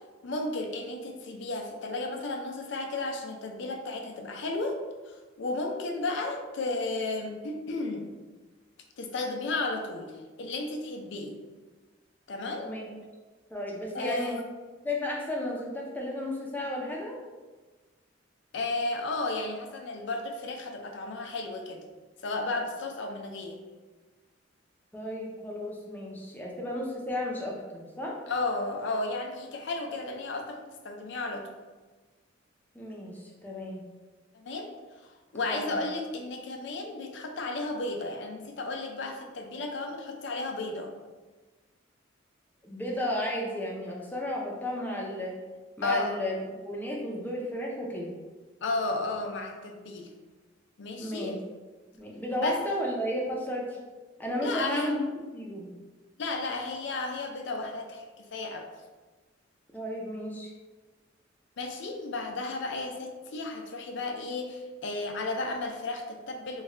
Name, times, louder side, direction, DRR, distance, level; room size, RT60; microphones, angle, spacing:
voice 1, 0.2-4.8 5.1-8.0 9.0-10.1 10.4-11.3 12.3-12.8 13.9-14.3 18.5-21.8 22.2-23.6 28.3-31.4 34.3-34.7 35.3-40.9 45.8-46.2 48.6-50.1 50.8-51.4 52.4-52.6 54.4-54.9 56.2-58.6 61.6-66.6, left 2 dB, 65° left, 3 dB, 0.5 m, -33 dB
voice 2, 13.5-14.4 14.8-17.2 24.9-28.2 32.7-33.8 35.5-35.8 42.6-45.3 45.8-46.4 46.7-48.1 51.0-51.4 52.0-53.8 54.2-55.0 55.3-55.7 59.7-60.5, left 1 dB, 10° left, -2 dB, 0.5 m, -33 dB
3.1 x 2.3 x 3.6 m, 1.3 s
head